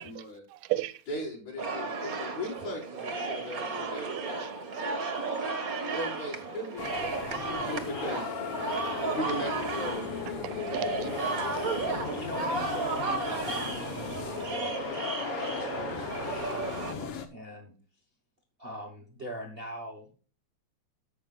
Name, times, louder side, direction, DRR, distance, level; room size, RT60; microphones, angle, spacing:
voice 1, 0.0-1.0 2.0-2.2 3.0-3.1 3.3-3.5 4.1-5.4 5.7-6.3 7.0-7.9 10.4-11.1, right 16 dB, 80° right, 1.9 m, -40 dB
voice 2, 1.1-5.2 5.9-8.3 9.0-11.9, equal, 80° left, 6.5 m, -39 dB
sound 1, 1.6-16.9, right 3 dB, 40° right, 1.3 m, -34 dB
sound 2, 6.8-17.3, left 8 dB, 65° left, 1.7 m, -37 dB
voice 3, 12.0-15.0 15.4-17.7 18.6-20.2, right 1 dB, 60° right, 0.6 m, -43 dB
15.0 x 6.6 x 2.4 m
omnidirectional pair, 3.3 m